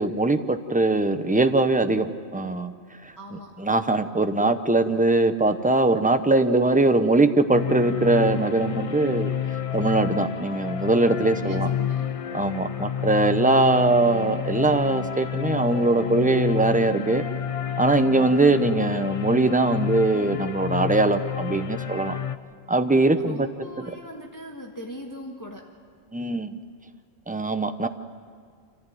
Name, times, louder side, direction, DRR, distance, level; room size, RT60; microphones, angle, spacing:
voice 1, 0.0-2.7 3.6-9.3 9.7-11.7 12.3-17.2 17.8-22.2 22.7-23.5 23.8-23.9 26.1-26.6 27.3-27.9, right 2 dB, 10° right, 9 dB, 0.6 m, -21 dB
voice 2, 3.2-3.5 11.3-12.1 23.2-25.7, left 1 dB, 15° left, -1 dB, 1.4 m, -39 dB
sound 1, 7.5-22.4, left 9 dB, 40° left, 0.6 m, -29 dB
26.0 x 15.0 x 9.1 m, 2.1 s
omnidirectional pair, 1.2 m